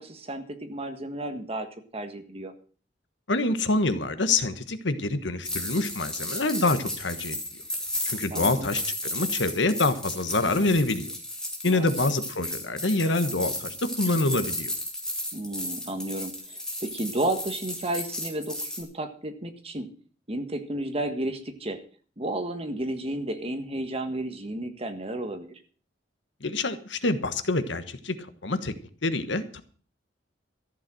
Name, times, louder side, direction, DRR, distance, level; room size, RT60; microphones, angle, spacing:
voice 1, 0.0-1.7 1.9-2.5 8.3-8.7 11.7-11.9 15.3-19.9 20.3-21.8 22.2-25.6, right 1 dB, 35° right, 7 dB, 1.6 m, -32 dB
voice 2, 3.3-7.4 8.0-8.8 9.1-11.1 11.6-14.7 26.4-28.1 28.4-28.7 29.0-29.6, left 2 dB, 75° left, 11 dB, 1.3 m, -26 dB
sound 1, 5.4-18.8, left 1 dB, 5° left, 3.2 m, -34 dB
14.0 x 7.5 x 7.6 m, 0.43 s
head